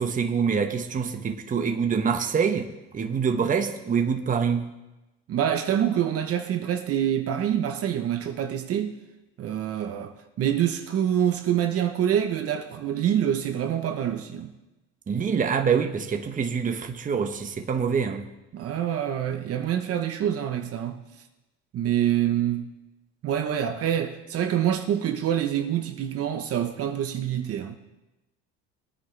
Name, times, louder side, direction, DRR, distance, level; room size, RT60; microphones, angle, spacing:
voice 1, 0.0-4.7 15.1-18.3, right 6 dB, 25° right, 1.1 m, -25 dB
voice 2, 5.3-8.9 9.4-14.5 18.5-21.0 21.7-22.7 23.2-27.8, right 10 dB, 45° right, 1.1 m, -26 dB
21.5 x 9.4 x 3.4 m
cardioid pair, 120°, 32 cm